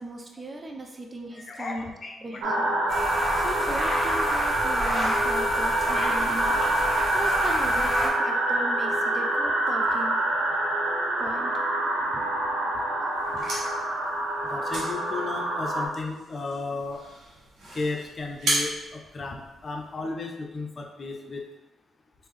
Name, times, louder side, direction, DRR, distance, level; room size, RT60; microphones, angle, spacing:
voice 1, 0.0-1.9 2.2-3.0 3.4-6.5 7.1-10.2 11.2-11.5, right 1 dB, 35° right, 2 dB, 0.5 m, -37 dB
voice 2, 1.3-2.4 13.3-13.4 14.4-17.0 17.7-21.4, left 3 dB, 45° left, 2 dB, 0.6 m, -34 dB
sound 1, 2.4-15.9, right 1 dB, 90° right, 0.6 m, -26 dB
sound 2, 2.9-8.1, equal, 15° left, 1.2 m, -29 dB
sound 3, 13.1-19.9, right 1 dB, 75° right, 1.1 m, -35 dB
3.5 x 2.6 x 3.2 m, 1.1 s
supercardioid pair, 60°, 0 cm